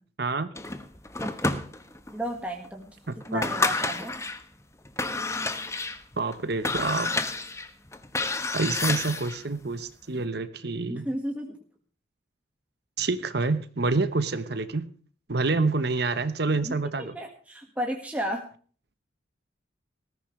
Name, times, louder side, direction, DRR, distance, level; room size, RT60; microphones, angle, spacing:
voice 1, 0.2-0.5 3.1-3.4 6.2-7.1 8.5-11.1 13.0-14.9 15.3-17.1, right 3 dB, 55° right, 12 dB, 1.0 m, -27 dB
sound 1, 0.5-2.1 2.6-2.7 3.2-4.4 4.8-9.4, left 3 dB, 15° left, 1.1 m, -30 dB
voice 2, 2.1-3.0 3.3-4.1 10.9-11.6 16.6-18.4, equal, 5° right, 1 dB, 1.7 m, -33 dB
19.5 x 14.0 x 3.2 m, 0.42 s
head